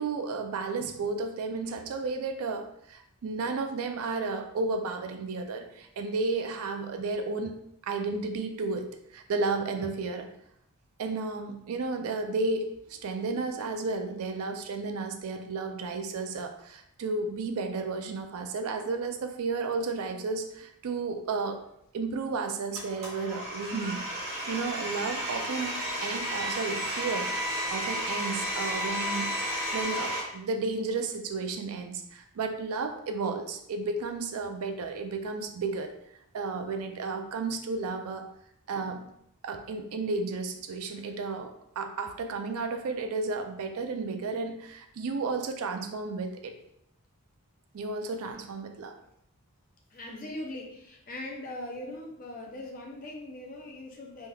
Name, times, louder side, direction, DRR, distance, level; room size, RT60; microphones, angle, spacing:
voice 1, 0.0-7.5 7.8-10.3 11.0-21.6 21.9-24.1 24.5-27.3 27.7-29.4 29.7-35.9 36.3-38.3 38.7-39.1 39.4-46.5 47.7-48.9, right 3 dB, 75° right, 6 dB, 0.4 m, -33 dB
Domestic sounds home sounds, 22.7-30.2, equal, 25° right, 1.3 m, -32 dB
voice 2, 49.9-54.3, left 1 dB, 35° left, -1 dB, 0.6 m, -40 dB
3.4 x 3.0 x 2.3 m, 0.74 s
head